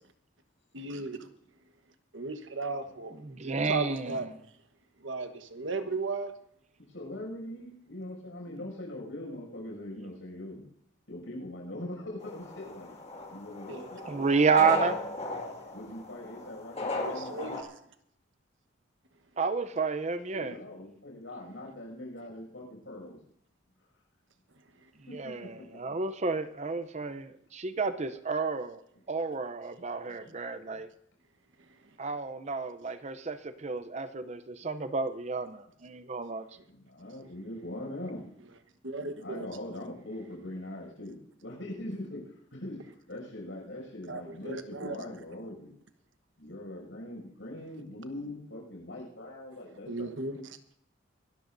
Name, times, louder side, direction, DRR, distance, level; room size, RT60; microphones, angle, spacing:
voice 1, 0.7-1.3 2.1-3.2 3.6-4.3 5.0-6.3 13.7-14.1 16.9-17.7 38.8-39.5 44.1-45.1 49.9-50.4, right 3 dB, 80° right, 1.2 m, -35 dB
voice 2, 3.2-4.2 14.0-15.0 19.4-20.6 25.1-30.9 32.0-36.5, right 4 dB, 35° right, 0.6 m, -30 dB
voice 3, 6.9-10.6 11.1-13.0 13.3-14.0 15.7-17.3 20.3-23.2 25.2-25.8 30.2-30.8 36.7-38.2 39.2-42.2 42.5-42.8 43.1-45.7 46.4-50.4, left 1 dB, 75° left, 6.5 m, -42 dB
sound 1, 12.2-17.6, left 2 dB, 35° left, 2.1 m, -37 dB
24.0 x 13.5 x 2.6 m
head